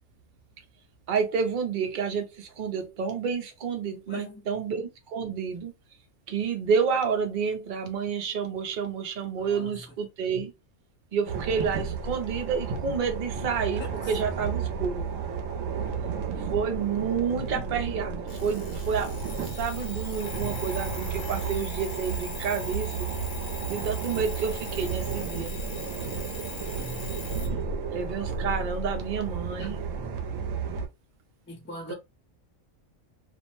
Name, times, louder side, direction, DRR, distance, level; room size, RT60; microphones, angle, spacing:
voice 1, 1.1-5.7 6.3-10.5 11.1-15.1 16.5-23.1 23.7-25.5 27.9-29.8 31.9-32.0, right 6 dB, 50° right, 0.6 m, -29 dB
voice 2, 4.1-4.5 9.4-9.8 13.8-14.2 26.8-27.0 27.5-27.6 29.6-29.7 29.9-30.3 31.5-31.9, left 1 dB, 15° left, 0.4 m, -42 dB
sound 1, 11.3-30.9, right 5 dB, 75° right, 0.9 m, -32 dB
Alarm, 18.3-27.5, left 7 dB, 70° left, 1.0 m, -43 dB
2.5 x 2.1 x 3.0 m
omnidirectional pair, 1.4 m